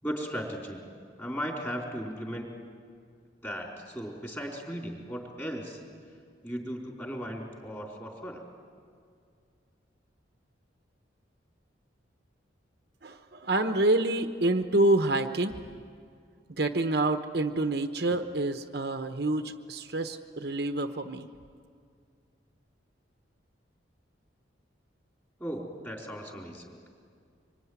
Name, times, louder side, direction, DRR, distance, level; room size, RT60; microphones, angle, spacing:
voice 1, 0.0-0.8 1.2-2.5 3.4-5.8 6.4-8.4 25.4-26.8, equal, 10° left, -1 dB, 4.2 m, -36 dB
voice 2, 13.0-15.6 16.5-21.3, right 2 dB, 55° right, 7 dB, 1.0 m, -27 dB
25.5 x 24.5 x 9.6 m, 2.2 s
head